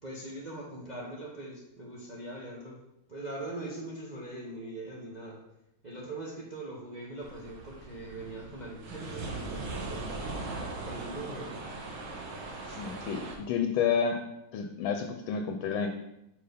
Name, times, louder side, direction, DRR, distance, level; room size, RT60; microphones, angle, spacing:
voice 1, 0.0-2.8 3.1-5.4 5.8-10.1 10.8-11.6 12.6-12.8, right 2 dB, 50° right, -3 dB, 0.5 m, -41 dB
sound 1, 7.2-13.4, right 2 dB, 80° right, 1.9 m, -39 dB
voice 2, 12.8-14.2 14.5-15.9, left 6 dB, 80° left, 6 dB, 1.4 m, -30 dB
5.3 x 4.5 x 5.0 m, 0.88 s
omnidirectional pair, 2.2 m